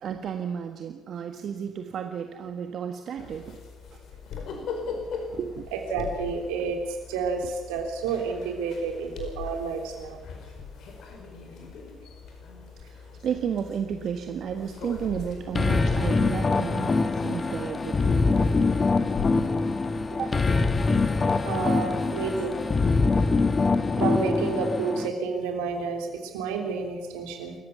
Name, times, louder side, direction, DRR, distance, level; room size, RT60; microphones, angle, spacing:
voice 1, 0.0-3.6 3.9-4.0 4.6-5.0 5.3-5.7 7.4-7.5 12.9-18.2 20.1-20.4, right 8 dB, 60° right, 6 dB, 1.5 m, -33 dB
sound 1, 3.2-22.8, left 5 dB, 65° left, 4.8 m, -41 dB
voice 2, 5.7-6.8 7.1-10.2 21.4-22.6 24.0-27.6, right 5 dB, 80° right, 4 dB, 3.5 m, -30 dB
sound 2, 15.5-25.1, left 3 dB, 35° left, 1.6 m, -24 dB
28.0 x 14.5 x 7.0 m, 1.3 s
hypercardioid pair, 55°, 0 cm